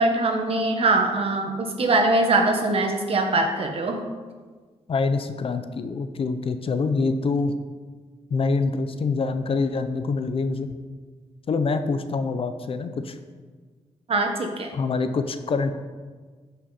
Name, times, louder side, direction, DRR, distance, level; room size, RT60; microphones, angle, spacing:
voice 1, 0.0-4.0 14.1-14.7, right 2 dB, 50° right, 3 dB, 1.4 m, -22 dB
voice 2, 4.9-7.5 8.3-10.7 11.5-13.2 14.7-15.7, left 4 dB, 50° left, 9 dB, 0.7 m, -25 dB
12.5 x 5.8 x 4.2 m, 1.5 s
cardioid pair, 90°, 12 cm